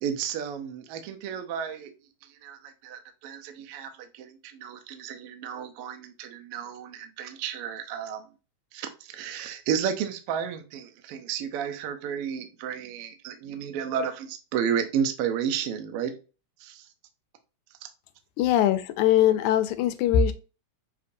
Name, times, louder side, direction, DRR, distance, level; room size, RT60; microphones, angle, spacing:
voice 1, 0.0-1.9 2.4-2.6 2.8-3.9 4.1-8.2 8.7-16.1 16.6-16.8, right 8 dB, 80° right, 1.3 m, -32 dB
voice 2, 18.4-20.3, left 10 dB, 85° left, 2.0 m, -21 dB
6.8 x 2.6 x 2.5 m
omnidirectional pair, 3.3 m